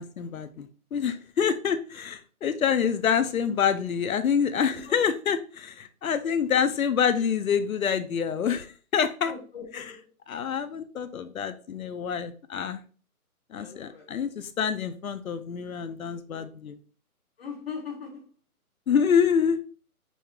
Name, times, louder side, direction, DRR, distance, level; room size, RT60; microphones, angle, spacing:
voice 1, 0.0-9.3 9.7-10.0 10.3-12.8 13.5-16.8 18.9-19.6, left 7 dB, 65° left, 0.7 m, -27 dB
voice 2, 9.3-10.0 13.6-14.1 17.4-18.2, left 6 dB, 40° left, 1.4 m, -39 dB
5.3 x 3.5 x 2.4 m
hypercardioid pair, 170°, 45 cm